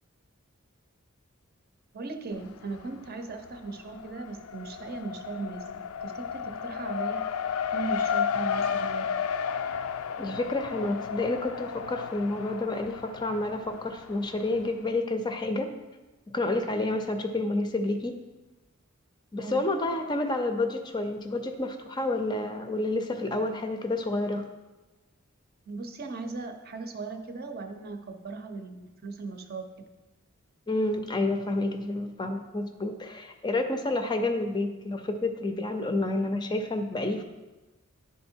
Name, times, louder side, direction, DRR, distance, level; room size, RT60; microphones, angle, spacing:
voice 1, 1.9-7.3 7.7-9.1 19.4-19.7 25.7-29.9, right 3 dB, 50° right, 6 dB, 0.7 m, -38 dB
Race car auto racing, 2.3-3.1 3.4-14.7, left 7 dB, 90° left, 0.4 m, -33 dB
voice 2, 10.2-15.7 16.3-18.2 19.3-24.4 30.7-37.2, left 2 dB, 20° left, 6 dB, 0.5 m, -29 dB
10.5 x 3.7 x 4.4 m, 1.1 s
head